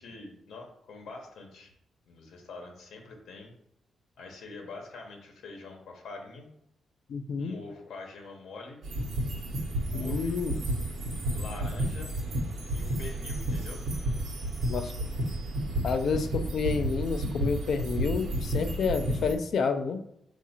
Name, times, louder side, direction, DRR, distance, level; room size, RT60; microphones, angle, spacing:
voice 1, 0.0-1.7 2.1-3.5 4.2-6.5 7.4-8.8 9.9-10.4 11.3-12.1 12.7-13.8, left 3 dB, 75° left, 2 dB, 0.9 m, -44 dB
voice 2, 7.1-7.6 9.9-10.6 14.7-14.9 15.8-20.0, left 5 dB, 55° left, 8 dB, 0.4 m, -29 dB
sound 1, 8.8-19.3, right 1 dB, 65° right, 1.0 m, -31 dB
4.6 x 2.4 x 4.2 m, 0.77 s
wide cardioid pair, 175°, 0 cm